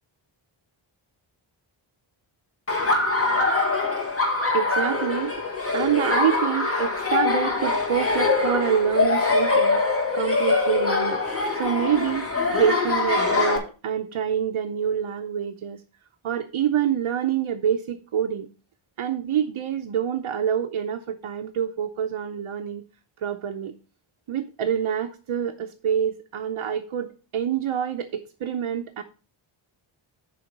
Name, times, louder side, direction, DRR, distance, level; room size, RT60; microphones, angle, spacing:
Laughter, 2.7-13.6, left 3 dB, 30° left, 2.1 m, -23 dB
voice 1, 4.5-9.8 10.1-11.2 11.5-12.3 12.5-15.8 16.2-18.5 19.0-22.8 23.2-23.7 24.3-29.0, right 9 dB, 85° right, 3 dB, 0.9 m, -26 dB
7.0 x 5.0 x 6.5 m, 0.36 s
wide cardioid pair, 130°, 49 cm